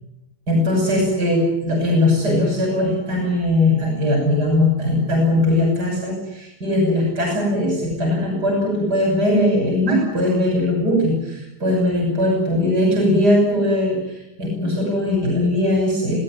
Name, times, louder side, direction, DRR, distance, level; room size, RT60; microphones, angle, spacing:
voice 1, 0.5-16.2, left 1 dB, 85° right, 0 dB, 7.4 m, -19 dB
28.0 x 17.0 x 9.5 m, 0.91 s
omnidirectional pair, 1.7 m